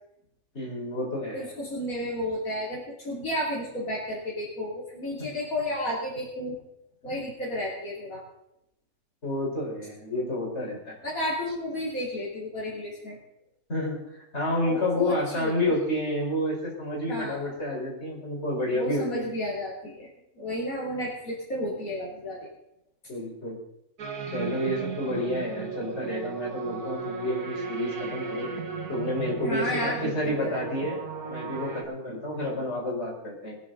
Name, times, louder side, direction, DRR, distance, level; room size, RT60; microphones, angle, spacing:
voice 1, 0.5-1.5 9.2-10.9 13.7-14.0 14.3-19.3 23.1-23.6 24.3-28.5 28.9-31.0 31.3-33.5, left 1 dB, 45° left, -4 dB, 5.0 m, -30 dB
voice 2, 1.3-6.6 7.0-8.2 11.0-13.2 14.6-15.7 17.1-17.5 18.7-20.1 20.3-22.5 29.4-30.6, left 1 dB, 70° left, -6 dB, 3.5 m, -32 dB
sound 1, 24.0-31.8, right 5 dB, 90° right, 1.9 m, -35 dB
22.5 x 10.5 x 3.9 m, 0.80 s
omnidirectional pair, 1.5 m